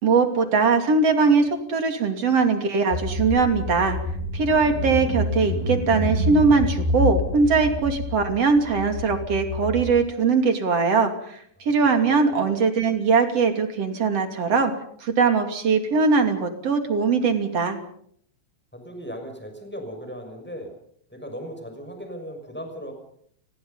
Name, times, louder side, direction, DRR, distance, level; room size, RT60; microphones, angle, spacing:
voice 1, 0.0-4.0 4.3-14.7 15.0-17.8, right 4 dB, 45° right, 6 dB, 3.5 m, -21 dB
Car / Engine, 2.9-9.9, left 2 dB, 70° left, 8.5 m, -28 dB
voice 2, 12.0-12.6 18.7-20.7 21.1-22.9, equal, 5° left, 4 dB, 6.2 m, -37 dB
30.0 x 22.0 x 5.6 m, 0.65 s
omnidirectional pair, 4.2 m